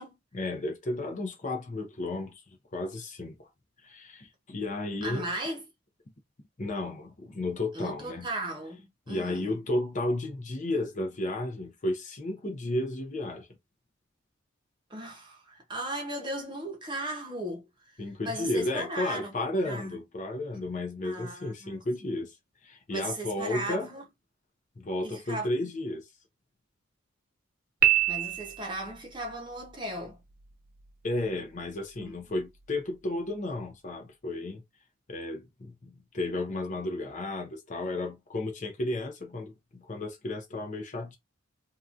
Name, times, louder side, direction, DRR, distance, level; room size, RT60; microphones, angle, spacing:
voice 1, 0.3-2.4 2.7-3.5 3.8-5.3 6.6-8.3 9.1-13.5 18.0-22.4 22.6-23.9 24.8-26.0 31.0-34.6 35.1-41.2, left 2 dB, 35° left, 0.6 m, -33 dB
voice 2, 5.0-5.6 7.7-9.5 14.9-18.0 18.2-19.4 19.6-20.0 21.0-22.1 22.9-24.1 25.0-25.7 28.1-30.2 32.0-32.2, right 1 dB, 20° right, 0.7 m, -37 dB
Piano, 27.8-28.9, right 12 dB, 45° right, 0.4 m, -25 dB
2.8 x 2.3 x 2.5 m
head